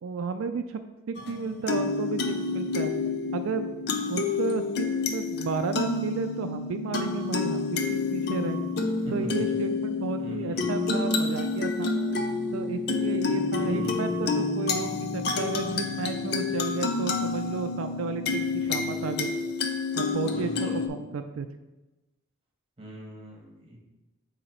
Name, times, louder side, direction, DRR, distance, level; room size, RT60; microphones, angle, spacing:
voice 1, 0.0-0.8 1.1-2.9 3.3-3.7 4.1-8.6 9.1-11.9 12.5-19.3 19.9-21.5, right 5 dB, 90° right, 7 dB, 0.4 m, -33 dB
sound 1, 1.2-20.9, left 4 dB, 50° left, 0.5 m, -29 dB
voice 2, 10.2-10.8 13.5-14.3 18.6-19.1 20.2-20.9 22.8-23.8, equal, 30° right, -2 dB, 1.4 m, -42 dB
8.0 x 2.8 x 4.4 m, 1.1 s
head